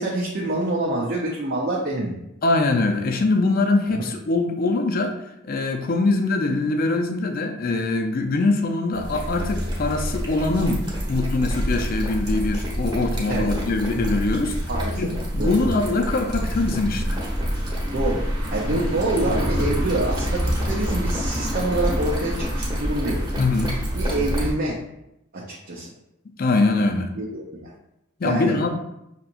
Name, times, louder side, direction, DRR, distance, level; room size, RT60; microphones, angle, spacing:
voice 1, 0.0-2.1 4.0-4.1 13.3-13.5 14.7-15.6 17.9-18.2 18.5-23.2 23.9-24.8 25.3-25.9 27.2-27.7 28.2-28.5, right 2 dB, 50° right, -4 dB, 0.6 m, -26 dB
voice 2, 2.4-5.1 5.4-10.8 11.1-14.6 14.9-17.2 18.7-18.8 23.4-23.7 26.4-27.1 28.2-28.7, left 3 dB, 50° left, 5 dB, 0.5 m, -23 dB
sound 1, 8.9-24.5, equal, 20° right, 1.0 m, -26 dB
5.6 x 2.9 x 2.5 m, 0.83 s
head